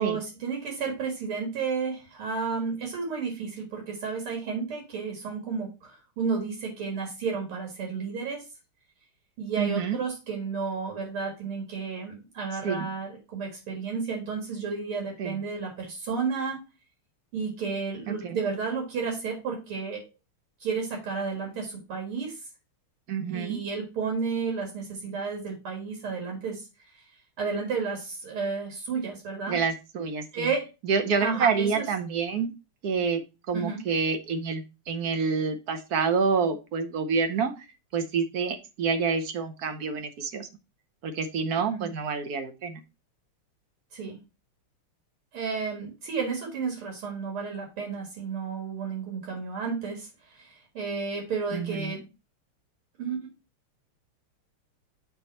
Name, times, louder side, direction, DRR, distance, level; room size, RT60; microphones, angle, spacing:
voice 1, 0.0-8.4 9.4-16.6 17.3-20.0 20.6-22.4 23.3-26.6 27.4-29.6 30.3-30.7 31.2-31.9 33.5-33.8 41.7-41.9 43.9-44.2 45.3-52.0 53.0-53.3, right 5 dB, 80° right, 0 dB, 2.7 m, -32 dB
voice 2, 9.6-10.0 12.6-12.9 15.2-15.4 18.2-18.4 23.1-23.6 29.5-30.5 30.8-32.5 32.8-33.2 33.5-37.7 37.9-40.5 41.0-42.8 51.5-51.9, right 5 dB, 60° right, 8 dB, 1.0 m, -28 dB
8.0 x 3.5 x 4.1 m, 0.27 s
omnidirectional pair, 2.4 m